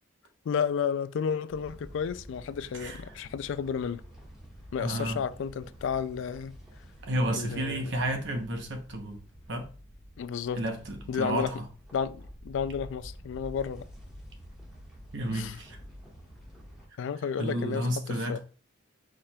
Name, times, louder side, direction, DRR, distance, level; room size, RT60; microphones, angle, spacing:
voice 1, 0.5-4.0 4.7-6.6 7.2-8.0 10.2-10.6 11.1-11.5 11.9-13.8 15.3-15.6 17.0-18.4, left 7 dB, 65° left, 0.3 m, -32 dB
sound 1, 1.5-16.9, equal, ahead, 1.4 m, -49 dB
voice 2, 4.8-5.2 7.0-9.2 9.5-9.7 10.6-11.6 15.1-15.8 17.4-18.4, right 1 dB, 65° right, 0.9 m, -31 dB
4.9 x 4.3 x 2.3 m
head